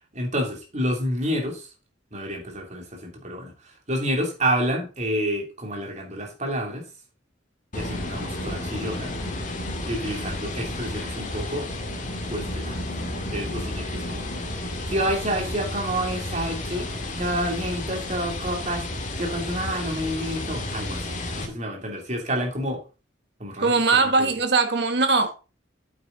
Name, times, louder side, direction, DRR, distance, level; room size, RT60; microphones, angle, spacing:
voice 1, 0.1-1.7 2.1-3.5 3.9-6.8 7.7-9.2 9.9-11.7 12.2-12.8 13.3-14.3 14.9-16.9 17.2-18.9 19.2-21.1 21.3-22.8 23.4-24.4, equal, 40° right, 3.1 m, -29 dB
sound 1, 7.7-21.5, left 1 dB, 40° left, 2.1 m, -32 dB
voice 2, 23.6-25.4, right 3 dB, 60° right, 1.5 m, -20 dB
8.7 x 8.4 x 4.0 m
head